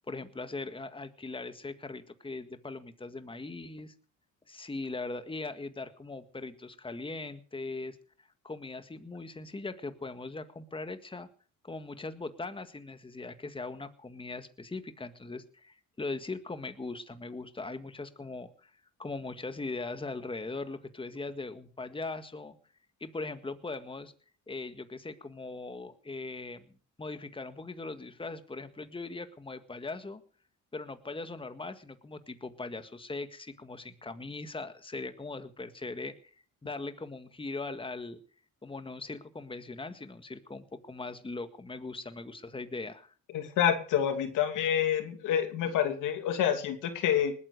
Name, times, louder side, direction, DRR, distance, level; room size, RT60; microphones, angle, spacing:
voice 1, 0.1-3.9 4.5-8.0 8.4-11.3 11.6-18.7 19.0-22.5 23.0-24.1 24.5-26.7 27.0-30.2 30.7-36.1 36.6-38.2 38.6-43.1, left 3 dB, 15° left, 10 dB, 1.7 m, -40 dB
voice 2, 43.3-47.3, left 9 dB, 90° left, 8 dB, 2.6 m, -28 dB
20.0 x 9.8 x 6.6 m, 0.43 s
cardioid pair, 90°, 30 cm